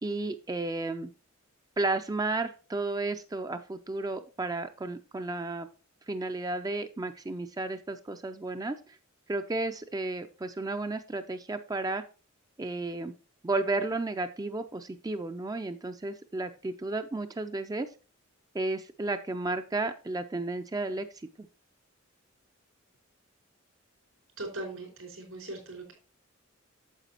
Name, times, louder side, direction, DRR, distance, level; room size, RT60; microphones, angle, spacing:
voice 1, 0.0-1.1 1.8-5.7 6.1-9.0 9.3-12.0 12.6-13.1 13.4-17.9 18.5-21.3, right 2 dB, 20° right, 9 dB, 0.4 m, -33 dB
voice 2, 24.4-25.9, right 2 dB, 80° right, 2 dB, 4.6 m, -39 dB
9.1 x 7.2 x 2.9 m, 0.36 s
head